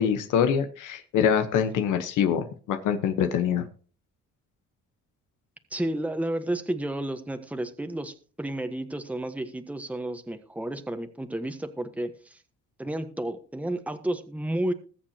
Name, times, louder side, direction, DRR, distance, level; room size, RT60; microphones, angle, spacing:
voice 1, 0.0-3.6, left 8 dB, 85° left, 8 dB, 1.3 m, -24 dB
voice 2, 5.7-12.4 12.8-14.7, right 1 dB, 5° right, 7 dB, 1.4 m, -31 dB
21.0 x 7.3 x 2.9 m, 0.39 s
cardioid pair, 90°, 30 cm